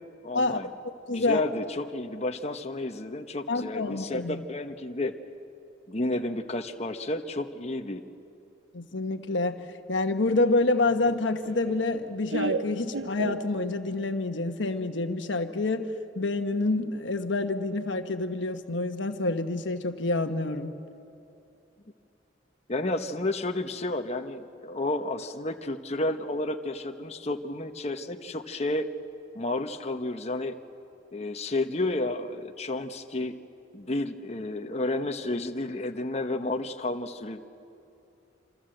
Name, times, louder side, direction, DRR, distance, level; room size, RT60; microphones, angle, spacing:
voice 1, 0.2-0.7 1.1-5.1 5.9-8.0 22.7-28.9 29.3-30.5 31.1-33.3 33.7-37.4, left 2 dB, 35° left, 5 dB, 1.1 m, -31 dB
voice 2, 0.8-1.4 3.5-4.4 8.7-9.6 9.9-15.8 16.2-20.7, left 2 dB, 80° left, 7 dB, 1.3 m, -27 dB
Laughter, 10.4-14.0, right 3 dB, 90° right, 0.7 m, -34 dB
27.0 x 26.5 x 7.9 m, 2.7 s
head